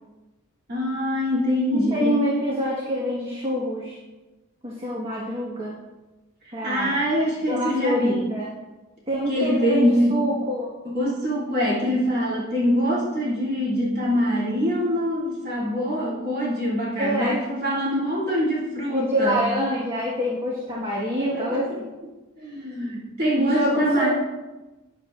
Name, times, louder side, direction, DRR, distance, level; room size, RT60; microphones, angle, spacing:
voice 1, 0.7-2.3 6.4-8.2 9.3-10.2 10.8-19.4 21.2-21.8 22.4-24.1, equal, 50° right, -7 dB, 3.0 m, -24 dB
voice 2, 1.7-4.0 4.6-5.8 6.5-7.1 7.5-8.5 9.1-10.7 17.0-17.3 18.9-21.9 23.4-24.1, equal, 25° right, -5 dB, 1.6 m, -26 dB
12.5 x 9.2 x 2.6 m, 1.1 s
head